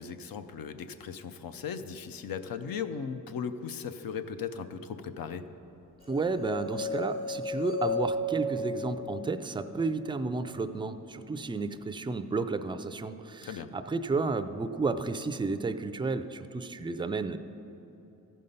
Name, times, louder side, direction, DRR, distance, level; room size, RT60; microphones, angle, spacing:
voice 1, 0.0-5.4 13.4-13.7, left 6 dB, 70° left, 10 dB, 0.6 m, -37 dB
sound 1, 6.1-10.2, left 1 dB, 45° left, 1.8 m, -34 dB
voice 2, 6.1-17.4, right 3 dB, 15° right, 10 dB, 0.4 m, -32 dB
14.0 x 5.5 x 5.3 m, 3.0 s
cardioid pair, 75°, 36 cm